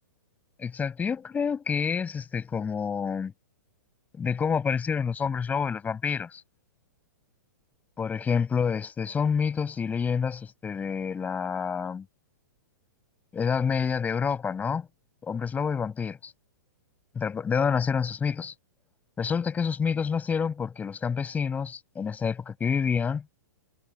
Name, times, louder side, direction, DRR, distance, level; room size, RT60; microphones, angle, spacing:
voice 1, 0.6-3.3 4.2-6.4 8.0-12.1 13.3-14.9 15.2-16.3 17.2-18.5 19.2-23.2, left 6 dB, 15° left, 6.9 m, -28 dB
hypercardioid pair, 120°, 10 cm